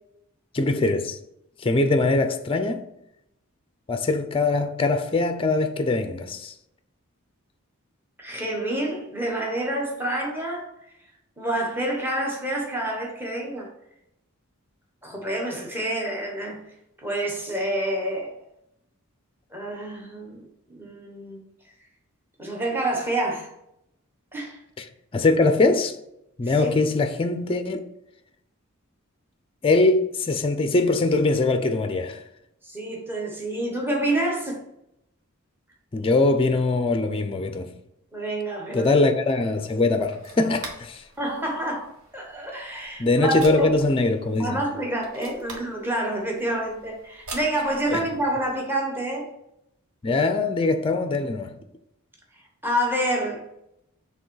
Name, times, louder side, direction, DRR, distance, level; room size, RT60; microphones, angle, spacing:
voice 1, 0.5-1.2 1.6-2.9 3.9-6.5 25.1-26.0 26.4-27.8 29.6-32.2 35.9-37.7 38.7-41.0 43.0-44.6 47.9-48.0 50.0-51.6, left 2 dB, 25° left, 0.5 m, -22 dB
voice 2, 8.2-10.7 11.4-13.7 15.0-16.6 17.0-18.4 19.5-20.4 20.7-21.4 22.4-23.5 24.3-24.6 26.5-26.7 32.6-34.6 38.1-38.9 41.2-43.7 44.4-49.3 52.6-53.4, right 1 dB, 10° right, 1.2 m, -28 dB
sound 1, 39.2-48.6, right 2 dB, 80° right, 1.2 m, -45 dB
6.9 x 3.4 x 4.6 m
head